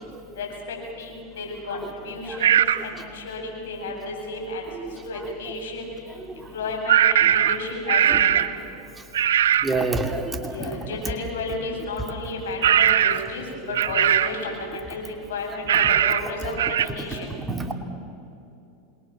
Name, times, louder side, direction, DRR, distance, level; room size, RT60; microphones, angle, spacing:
voice 1, 0.4-5.8 6.5-8.4 10.5-17.3, left 2 dB, 80° left, 1 dB, 7.8 m, -33 dB
sound 1, 2.4-2.8 6.9-8.6 9.1-9.7 12.6-13.3 13.7-14.4 15.7-16.3 16.6-16.9, right 10 dB, 85° right, 0.9 m, -19 dB
voice 2, 9.6-10.7 17.1-17.7, right 3 dB, 15° right, 4 dB, 2.8 m, -27 dB
28.0 x 22.0 x 7.1 m, 2.7 s
hypercardioid pair, 100°, 0 cm